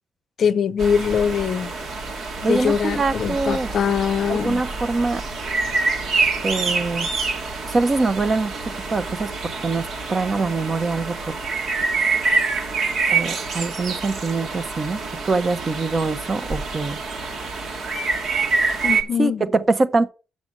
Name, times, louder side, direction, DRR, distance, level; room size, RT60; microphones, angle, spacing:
voice 1, 0.4-1.7 2.5-4.6 18.8-19.4, left 7 dB, 60° left, 0.6 m, -22 dB
sound 1, 0.8-19.0, right 4 dB, 65° right, 2.0 m, -26 dB
voice 2, 2.4-3.7 4.3-5.2 6.4-7.1 7.7-8.5 8.9-9.3 9.6-11.3 13.1-15.0 15.2-17.0 19.2-20.1, right 3 dB, 35° right, 0.9 m, -23 dB
6.8 x 6.4 x 6.6 m
cardioid pair, 90°, 0 cm